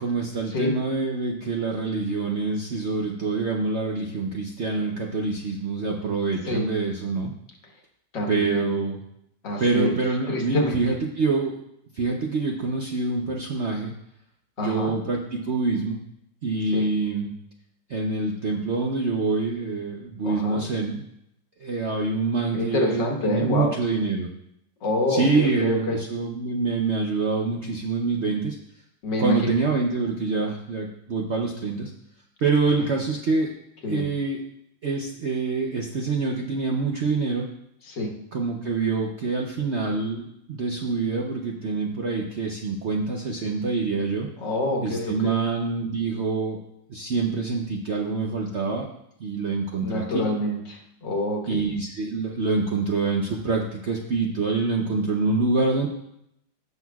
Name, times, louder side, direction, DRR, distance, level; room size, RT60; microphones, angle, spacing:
voice 1, 0.0-7.3 8.3-9.0 9.6-11.5 11.9-13.9 14.6-16.0 16.4-17.3 17.9-21.0 21.6-24.3 25.1-28.6 29.2-31.9 32.4-33.5 33.9-34.4 34.8-37.5 38.3-44.3 44.8-46.6 46.9-48.9 49.2-50.2 51.5-55.9, right 3 dB, 60° right, 0 dB, 0.7 m, -26 dB
voice 2, 8.1-8.7 9.4-9.9 10.3-10.8 14.6-14.9 16.7-16.9 20.2-20.6 22.5-23.7 24.8-26.0 29.0-29.5 33.8-34.0 37.9-38.1 44.4-45.4 49.8-51.6, left 1 dB, 70° left, 1 dB, 2.1 m, -26 dB
16.5 x 6.1 x 2.3 m, 0.77 s
omnidirectional pair, 2.0 m